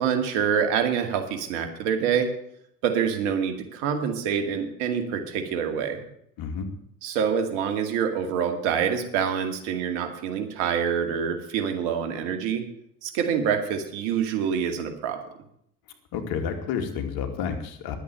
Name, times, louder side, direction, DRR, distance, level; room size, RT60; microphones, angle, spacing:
voice 1, 0.0-2.3 2.8-6.0 7.0-12.6 13.0-15.2, right 7 dB, 70° right, 6 dB, 2.4 m, -26 dB
voice 2, 6.4-6.7 16.1-18.0, left 7 dB, 60° left, 5 dB, 2.6 m, -30 dB
11.0 x 8.4 x 8.9 m, 0.72 s
hypercardioid pair, 80°, 41 cm